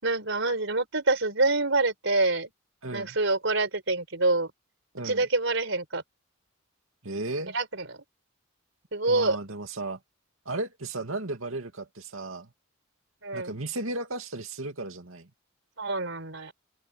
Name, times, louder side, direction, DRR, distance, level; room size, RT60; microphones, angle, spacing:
voice 1, 0.0-2.5 2.9-4.5 5.0-6.0 7.5-8.0 8.9-9.4 13.2-13.6 15.8-16.5, right 2 dB, 65° right, 4.8 m, -26 dB
voice 2, 2.8-3.2 4.9-5.2 7.0-7.5 9.1-10.0 10.5-12.5 13.3-15.3, right 2 dB, 85° right, 2.6 m, -35 dB
open air
head